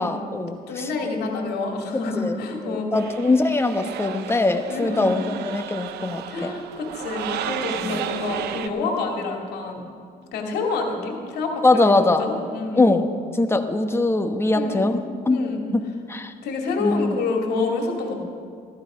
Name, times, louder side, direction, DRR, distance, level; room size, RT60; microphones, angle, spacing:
voice 1, 0.0-1.1 2.2-2.4 2.6-6.5 7.8-8.0 11.6-12.2 12.8-13.1 13.3-15.4 15.7-15.8 16.1-16.3 16.8-17.1, left 2 dB, 15° left, 7 dB, 1.1 m, -22 dB
voice 2, 0.7-3.0 4.7-5.2 6.3-9.8 10.3-12.9 14.5-14.9 15.3-15.6 16.4-18.1, left 3 dB, 75° left, 1 dB, 2.5 m, -27 dB
Take me Out to the Ball Game, 2.9-8.7, right 10 dB, 75° right, 0.8 m, -33 dB
14.5 x 14.5 x 5.1 m, 2.2 s
cardioid pair, 110°, 17 cm